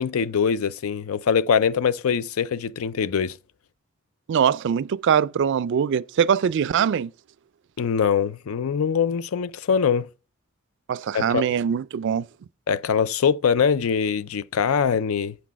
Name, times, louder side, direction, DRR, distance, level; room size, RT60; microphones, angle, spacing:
voice 1, 0.0-3.4 7.8-10.1 11.1-11.4 12.7-15.4, left 6 dB, 90° left, 0.4 m, -23 dB
voice 2, 4.3-7.1 10.9-12.3, right 7 dB, 60° right, 0.3 m, -22 dB
8.3 x 6.1 x 4.6 m
head